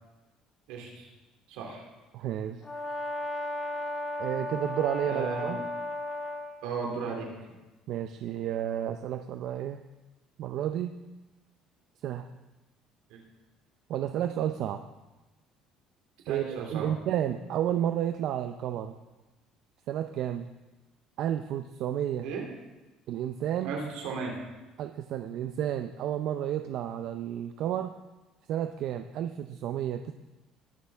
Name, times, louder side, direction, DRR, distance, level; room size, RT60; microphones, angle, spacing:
voice 1, 0.7-1.1 1.5-1.8 5.0-5.6 6.6-7.3 13.1-13.2 16.2-16.9 22.2-22.4 23.6-24.4, right 5 dB, 85° right, 0 dB, 2.8 m, -35 dB
voice 2, 2.1-2.6 4.2-5.6 7.9-9.8 10.4-10.9 12.0-12.3 13.9-14.8 16.3-18.9 19.9-20.5 21.2-22.3 23.1-23.7 24.8-27.9 28.5-30.1, right 10 dB, 65° right, 7 dB, 0.5 m, -31 dB
Brass instrument, 2.6-6.5, left 1 dB, 20° left, 1.7 m, -34 dB
19.5 x 6.8 x 3.5 m, 1.1 s
cardioid pair, 120°, 0 cm